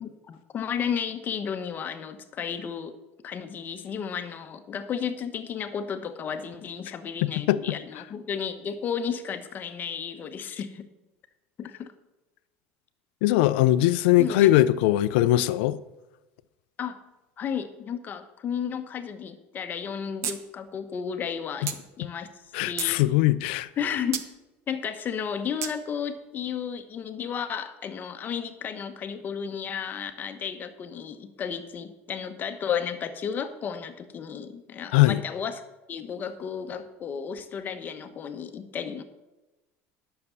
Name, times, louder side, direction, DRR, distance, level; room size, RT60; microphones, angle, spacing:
voice 1, 0.0-3.0 3.2-10.9 11.6-11.9 14.2-14.5 16.8-17.0 17.4-22.3 22.6-23.4 23.8-24.3 24.7-35.6 35.9-39.0, left 7 dB, 35° left, 1.1 m, -33 dB
voice 2, 13.2-15.8 22.5-23.7 34.9-35.2, left 15 dB, 85° left, 0.5 m, -20 dB
sound 1, 20.2-20.4 20.7-20.8 21.7-21.8 22.4-23.0 24.1-24.3 25.6-25.7, right 10 dB, 55° right, 1.0 m, -31 dB
10.5 x 6.8 x 7.0 m
cardioid pair, 130°, 6 cm